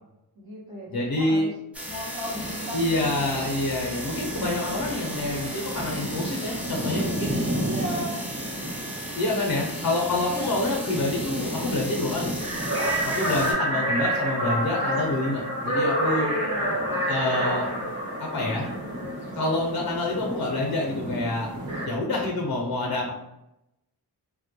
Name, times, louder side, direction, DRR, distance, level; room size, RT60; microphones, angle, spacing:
voice 1, 0.3-1.5 1.8-3.5 7.6-8.3 10.2-10.5 16.2-17.2, equal, 60° right, -6 dB, 0.9 m, -37 dB
voice 2, 0.9-1.5 2.7-7.5 9.1-12.3 13.0-16.3 17.1-17.7 18.2-18.7 19.4-21.5 21.8-23.1, left 2 dB, 60° left, -1 dB, 0.6 m, -27 dB
sound 1, 1.7-13.5, equal, 5° right, 0.3 m, -36 dB
sound 2, 2.2-21.9, equal, 40° right, 1.1 m, -30 dB
2.1 x 2.1 x 2.8 m, 0.86 s
wide cardioid pair, 125°, 41 cm